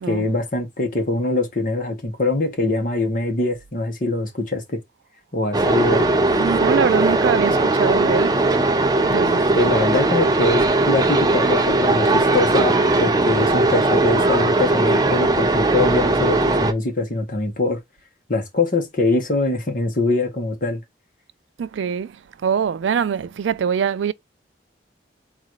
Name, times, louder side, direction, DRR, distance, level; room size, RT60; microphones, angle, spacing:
voice 1, 0.1-4.8 5.3-6.1 9.5-17.8 18.3-20.8, left 2 dB, 45° left, 1.2 m, -23 dB
sound 1, 5.5-16.7, right 2 dB, 20° right, 0.5 m, -18 dB
voice 2, 6.3-8.3 9.1-9.4 21.6-22.2 22.4-24.1, right 7 dB, 85° right, 0.3 m, -23 dB
4.0 x 2.5 x 4.6 m
head